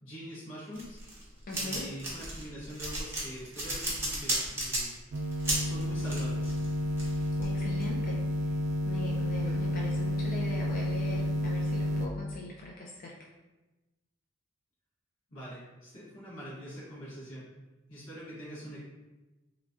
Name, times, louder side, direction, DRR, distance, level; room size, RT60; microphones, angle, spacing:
voice 1, 0.0-1.0 1.5-5.0 5.6-6.5 15.3-17.5 17.9-18.8, equal, 85° left, -10 dB, 1.3 m, -44 dB
sound 1, 0.7-7.9, right 1 dB, 15° right, 0.7 m, -34 dB
voice 2, 1.5-1.9 7.4-8.6 8.8-13.3, left 2 dB, 45° left, -3 dB, 0.3 m, -41 dB
sound 2, 5.1-12.1, left 1 dB, 70° right, 0.3 m, -30 dB
3.0 x 2.5 x 2.3 m, 1.1 s
head